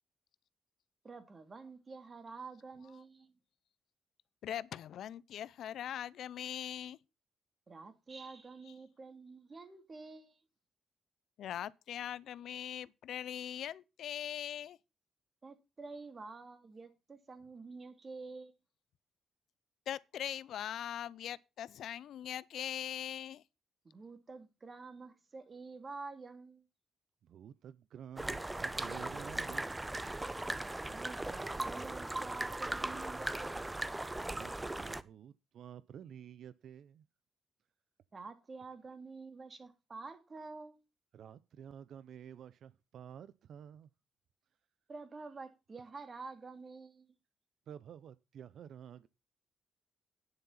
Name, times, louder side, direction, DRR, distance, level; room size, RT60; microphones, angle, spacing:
voice 1, 1.0-3.4 7.7-10.4 15.4-18.5 23.8-26.7 30.8-33.8 38.1-40.8 44.9-47.1, right 4 dB, 45° right, 3.1 m, -49 dB
voice 2, 4.4-7.0 8.7-8.8 11.4-14.8 19.9-23.4, left 10 dB, 75° left, 0.5 m, -41 dB
voice 3, 27.2-30.0 34.2-37.1 41.1-43.9 47.7-49.1, right 9 dB, 70° right, 0.6 m, -51 dB
sound 1, 28.2-35.0, right 2 dB, 20° right, 1.1 m, -38 dB
11.0 x 9.9 x 4.1 m
hypercardioid pair, 45°, 0 cm